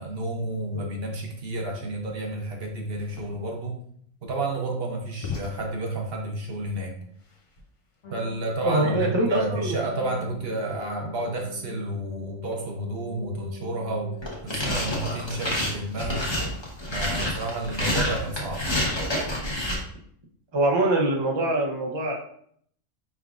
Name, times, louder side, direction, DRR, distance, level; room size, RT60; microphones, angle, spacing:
voice 1, 0.0-3.8 4.2-6.9 8.1-14.1 14.4-16.3 16.9-18.6, right 2 dB, 55° right, 1 dB, 0.9 m, -31 dB
sound 1, 2.9-8.0, left 5 dB, 50° left, 0.4 m, -41 dB
sound 2, 8.0-15.1, left 3 dB, 65° left, 1.2 m, -44 dB
voice 2, 8.6-9.8 20.5-22.2, right 1 dB, 35° right, 0 dB, 0.4 m, -24 dB
sound 3, 14.2-19.8, left 1 dB, 25° left, 0.8 m, -28 dB
4.9 x 3.5 x 2.4 m, 0.65 s
omnidirectional pair, 1.4 m